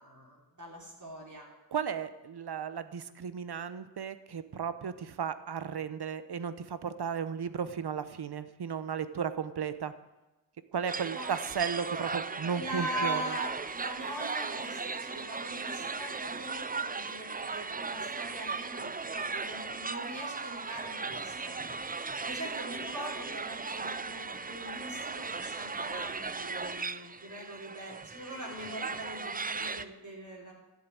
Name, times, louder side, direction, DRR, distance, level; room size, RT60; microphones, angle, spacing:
voice 1, 0.0-1.5 11.1-11.3 12.6-30.5, right 1 dB, 40° right, -3 dB, 3.7 m, -42 dB
voice 2, 1.7-9.9 10.7-13.2, right 7 dB, 60° right, 13 dB, 1.0 m, -35 dB
sound 1, 10.9-29.8, right 4 dB, 20° right, 0.4 m, -37 dB
13.5 x 7.7 x 9.4 m, 1.1 s
wide cardioid pair, 130°, 44 cm